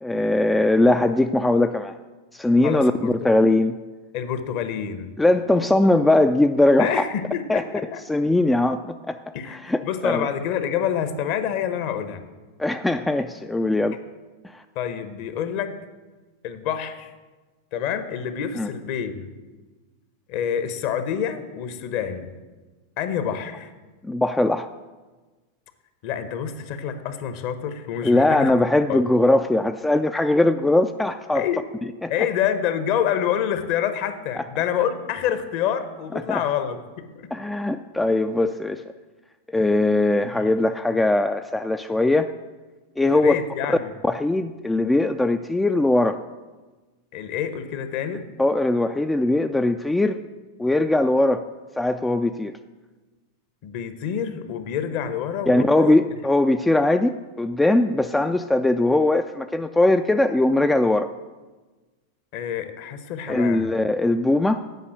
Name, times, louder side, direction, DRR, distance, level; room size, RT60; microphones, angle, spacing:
voice 1, 0.0-1.9 2.3-3.8 5.2-7.0 7.5-7.6 8.1-9.2 9.5-10.3 12.6-14.0 14.5-14.6 18.6-18.7 24.0-24.7 28.0-31.5 32.0-32.1 34.4-34.5 36.3-36.4 37.3-38.8 39.5-42.3 43.0-43.4 43.7-43.8 44.0-46.2 48.4-50.2 50.6-51.5 51.8-52.5 55.5-61.1 63.3-64.6, left 2 dB, 5° left, 8 dB, 0.3 m, -20 dB
voice 2, 2.6-3.1 4.1-5.1 6.8-8.0 9.3-9.6 9.8-12.2 14.7-15.8 16.4-17.1 17.7-19.3 20.3-22.3 23.0-23.7 26.0-28.5 28.9-29.0 31.3-31.6 32.1-37.1 40.3-40.5 43.1-43.9 47.1-48.2 53.6-56.0 62.3-63.7, left 9 dB, 45° left, 10 dB, 0.9 m, -27 dB
9.3 x 5.6 x 7.8 m, 1.3 s
figure-of-eight pair, 90°, 0 cm